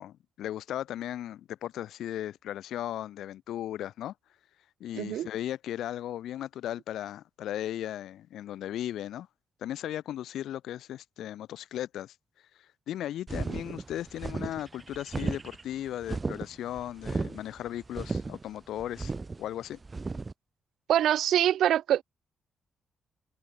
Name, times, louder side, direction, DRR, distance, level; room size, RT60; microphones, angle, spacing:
voice 1, 0.0-4.1 4.8-9.3 9.6-12.1 12.6-19.1 19.4-19.8, left 12 dB, 90° left, 1.3 m, -36 dB
voice 2, 5.0-5.3 20.9-22.0, right 11 dB, 85° right, 0.6 m, -24 dB
sound 1, 13.3-20.3, right 3 dB, 30° right, 5.0 m, -35 dB
cardioid pair, 95°, 0 cm